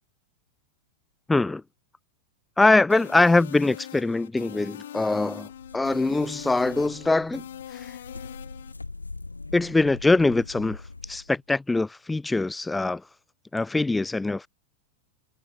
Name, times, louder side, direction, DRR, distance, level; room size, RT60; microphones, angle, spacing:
voice 1, 1.3-1.6 2.6-7.4 7.7-7.9 9.5-10.8 11.1-13.0 13.5-14.5, left 2 dB, 10° left, 1.5 m, -23 dB
sound 1, 2.9-8.7, left 11 dB, 60° left, 2.4 m, -42 dB
sound 2, 5.5-11.3, left 3 dB, 80° left, 2.9 m, -42 dB
figure-of-eight pair, 90°, 0 cm